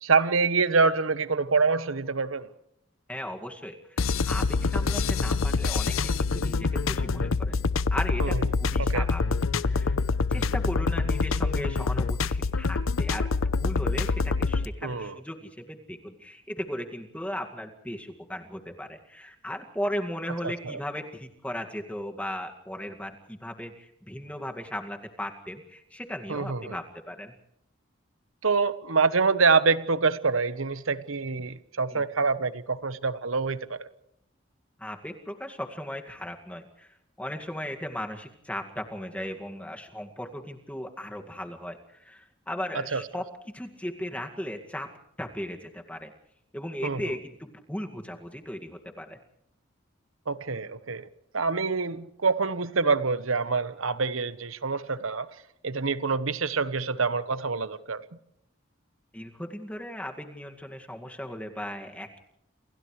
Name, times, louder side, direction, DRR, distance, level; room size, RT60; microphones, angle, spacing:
voice 1, 0.0-2.5 8.2-8.4 8.8-9.0 14.8-15.2 20.4-20.8 26.3-26.8 28.4-33.9 42.9-43.0 46.8-47.1 50.3-51.1 51.3-55.3 55.6-58.0, right 4 dB, 90° right, 1.1 m, -26 dB
voice 2, 3.1-7.6 7.9-9.2 9.6-10.0 10.3-13.3 13.6-27.3 31.9-32.0 34.8-44.9 45.2-46.1 46.5-49.2 59.1-62.2, equal, 5° left, 2.1 m, -37 dB
sound 1, 4.0-14.7, left 4 dB, 90° left, 0.7 m, -26 dB
29.5 x 27.0 x 3.3 m
head